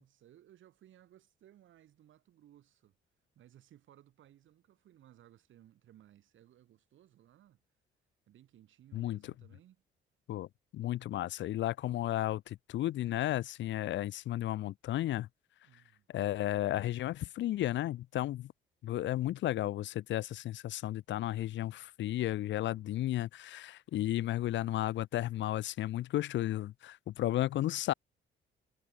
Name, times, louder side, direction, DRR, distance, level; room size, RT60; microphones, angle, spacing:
voice 1, 0.0-3.0 3.3-7.6 8.3-9.8 15.6-16.1, right 12 dB, 75° right, 7.6 m, -61 dB
voice 2, 10.7-15.3 16.1-18.5 18.8-27.9, left 14 dB, 70° left, 0.6 m, -33 dB
cardioid pair, 90°, 20 cm